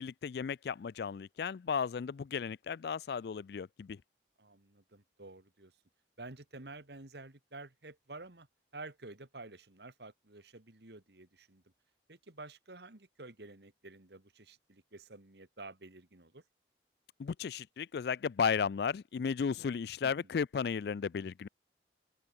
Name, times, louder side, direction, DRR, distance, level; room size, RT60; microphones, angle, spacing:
voice 1, 0.0-4.0 17.2-21.5, left 6 dB, 60° left, 0.3 m, -34 dB
voice 2, 4.4-5.8 6.2-8.5 8.7-11.6 12.1-16.4 20.0-20.4, right 2 dB, 65° right, 2.1 m, -50 dB
open air
head